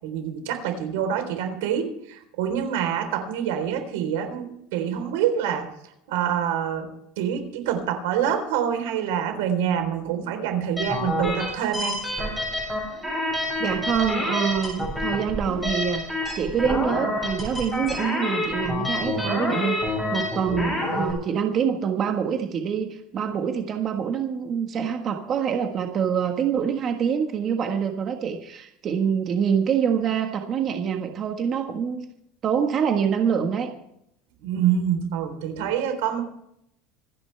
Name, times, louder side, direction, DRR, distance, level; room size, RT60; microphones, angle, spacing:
voice 1, 0.0-5.7 6.1-12.0 34.4-36.2, right 9 dB, 90° right, 6 dB, 3.9 m, -26 dB
sound 1, 10.8-21.1, left 1 dB, 5° left, 7.3 m, -28 dB
voice 2, 13.6-16.0 16.3-32.1 32.4-33.7, right 7 dB, 30° right, 4 dB, 1.5 m, -25 dB
26.5 x 10.5 x 3.4 m, 0.77 s
cardioid pair, 165°, 0 cm